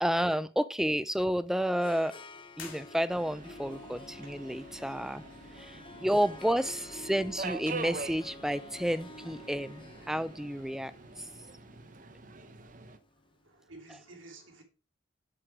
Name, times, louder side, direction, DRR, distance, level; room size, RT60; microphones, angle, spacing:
voice 1, 0.0-2.2 2.6-5.2 5.6-10.9 11.2-11.3, equal, ahead, 0.4 m, -31 dB
Harp, 1.1-13.3, left 2 dB, 25° left, 0.7 m, -50 dB
sound 1, 2.5-3.6, left 6 dB, 85° left, 2.5 m, -49 dB
Subway metro underground, 3.1-13.0, right 4 dB, 40° right, 0.9 m, -45 dB
voice 2, 13.4-14.6, right 2 dB, 80° right, 3.0 m, -52 dB
7.9 x 7.4 x 4.7 m
head